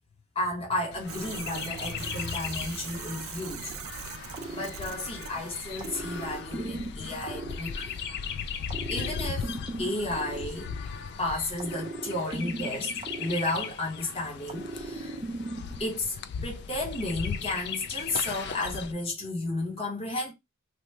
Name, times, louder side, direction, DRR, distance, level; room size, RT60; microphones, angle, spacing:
voice 1, 0.3-4.1 4.5-8.0 8.9-9.5 9.8-10.7 11.2-12.9 13.2-15.2 15.8-16.1 16.4-20.3, left 2 dB, 25° left, 1.0 m, -33 dB
Chirp tweet, 0.9-18.9, left 6 dB, 50° left, 0.3 m, -38 dB
sound 1, 1.1-6.4, right 8 dB, 75° right, 0.4 m, -41 dB
sound 2, 4.3-5.3 5.8-8.2 8.7-11.1 11.6-14.0 14.5-16.0, right 2 dB, 25° right, 0.5 m, -38 dB
2.9 x 2.2 x 3.2 m
head